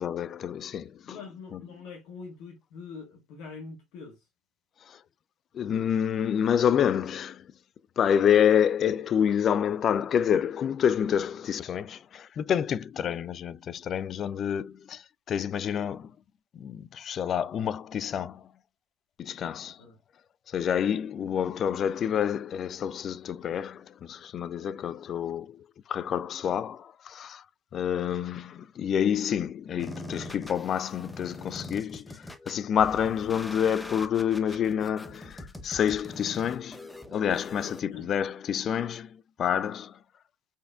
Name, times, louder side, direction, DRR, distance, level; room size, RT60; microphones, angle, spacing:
voice 1, 0.0-1.2 1.5-1.6 4.8-5.0 5.5-7.5 8.0-16.1 16.5-18.5 19.2-19.8 20.5-27.4 27.7-40.0, left 8 dB, 40° left, 0.3 m, -28 dB
voice 2, 1.1-4.3 19.8-20.0 37.6-38.1, left 4 dB, 55° left, 1.3 m, -44 dB
sound 1, 29.8-37.8, left 1 dB, 5° left, 0.9 m, -43 dB
5.5 x 4.2 x 2.3 m
figure-of-eight pair, 70°, 0 cm